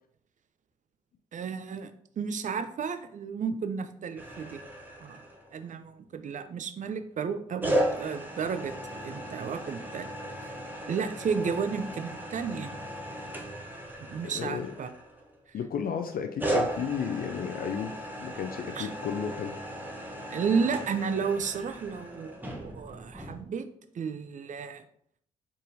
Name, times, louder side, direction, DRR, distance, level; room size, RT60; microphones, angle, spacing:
voice 1, 1.3-4.6 5.0-5.2 5.5-10.1 10.4-10.5 10.9-12.7 14.1-14.9 18.7-18.9 20.3-23.7 23.9-24.8, right 6 dB, 45° right, 10 dB, 0.5 m, -32 dB
sound 1, 4.2-5.7 7.6-15.4 16.4-23.4, right 1 dB, 10° right, 0.9 m, -36 dB
voice 2, 14.2-14.7 15.5-17.9 18.2-19.5, left 7 dB, 55° left, 5 dB, 0.4 m, -33 dB
4.0 x 3.8 x 2.7 m, 0.66 s
hypercardioid pair, 45°, 18 cm